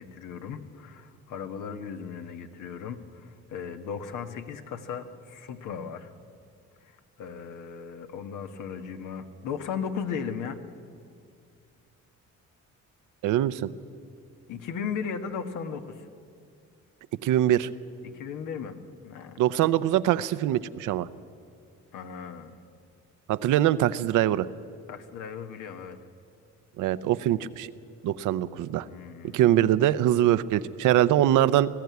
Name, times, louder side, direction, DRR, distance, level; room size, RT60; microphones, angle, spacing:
voice 1, 0.0-6.1 6.8-10.6 14.5-16.1 18.0-19.4 21.9-22.5 24.9-26.0 28.9-29.5, left 6 dB, 90° left, 7 dB, 1.4 m, -36 dB
voice 2, 13.2-13.7 17.2-17.7 19.4-21.1 23.3-24.5 26.8-27.7 28.0-28.9 29.3-31.7, right 12 dB, 90° right, 14 dB, 0.7 m, -23 dB
20.0 x 14.0 x 9.4 m, 2.3 s
cardioid pair, 90°, 30 cm